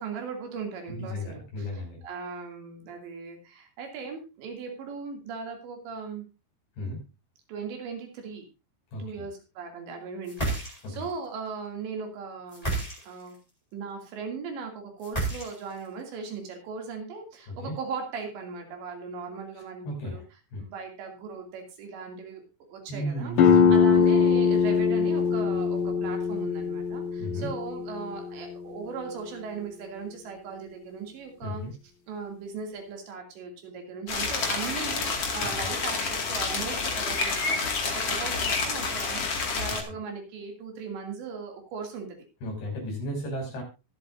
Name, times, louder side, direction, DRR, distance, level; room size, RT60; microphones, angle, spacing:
voice 1, 0.0-6.2 7.5-8.4 9.0-13.4 13.7-22.4 22.7-31.6 32.1-37.6 37.9-42.1, right 5 dB, 80° right, 3 dB, 4.9 m, -38 dB
voice 2, 0.9-2.0 6.8-7.0 8.9-9.0 10.8-11.1 17.5-17.7 19.9-20.2 20.5-20.6 22.9-23.8 27.2-27.5 31.4-31.7 42.4-43.6, left 1 dB, 75° left, 0 dB, 8.5 m, -34 dB
sound 1, 10.2-11.1 12.5-13.3 15.0-15.9, right 2 dB, 10° left, 3.5 m, -31 dB
sound 2, 23.4-28.8, left 6 dB, 60° left, 2.9 m, -22 dB
sound 3, 34.1-39.8, left 4 dB, 40° left, 2.6 m, -29 dB
23.0 x 8.1 x 2.7 m, 0.28 s
omnidirectional pair, 5.1 m